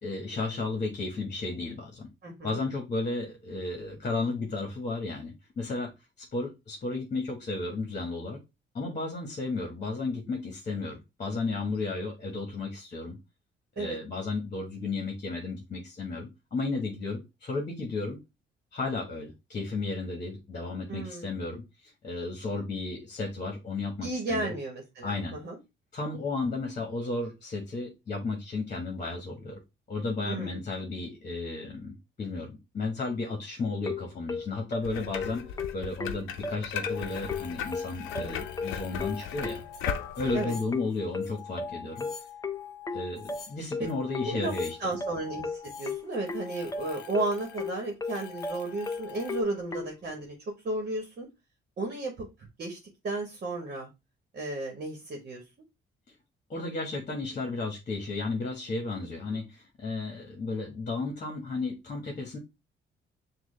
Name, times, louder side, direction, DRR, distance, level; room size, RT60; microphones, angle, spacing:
voice 1, 0.0-2.1 2.4-5.9 6.2-8.4 8.7-13.2 13.8-18.2 18.7-24.6 25.0-25.4 25.9-29.6 29.9-35.4 35.7-39.6 40.2-42.1 42.9-44.9 56.5-62.4, left 3 dB, 40° left, 2 dB, 1.2 m, -33 dB
voice 2, 2.2-2.6 13.8-14.0 20.9-21.3 24.0-25.6 30.2-30.6 38.1-38.4 40.3-40.5 44.2-44.5 44.8-50.4 50.6-51.3 51.8-52.3 52.6-52.8 53.0-53.9 54.3-55.4 59.3-59.4, right 2 dB, 50° right, 2 dB, 1.2 m, -33 dB
sound 1, 33.9-50.0, left 4 dB, 15° left, 0.4 m, -35 dB
sound 2, 34.8-40.4, left 9 dB, 85° left, 0.6 m, -37 dB
sound 3, 36.9-49.4, left 6 dB, 60° left, 0.8 m, -45 dB
6.1 x 2.4 x 3.2 m, 0.23 s
cardioid pair, 90°, 20 cm